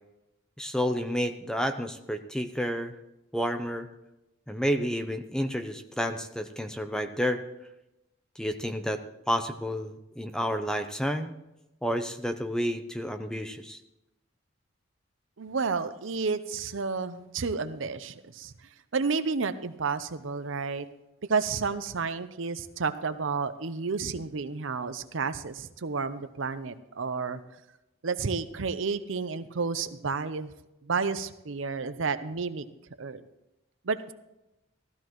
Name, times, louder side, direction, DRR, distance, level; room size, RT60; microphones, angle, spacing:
voice 1, 0.6-2.9 3.3-3.9 4.5-7.4 8.4-11.3 11.8-13.8, equal, 5° left, 7 dB, 0.6 m, -30 dB
voice 2, 15.4-18.5 18.9-20.9 21.3-27.4 28.0-30.5 30.8-32.7 33.0-33.2 33.8-34.1, right 4 dB, 70° right, 12 dB, 0.7 m, -31 dB
15.5 x 13.5 x 3.1 m, 0.94 s
head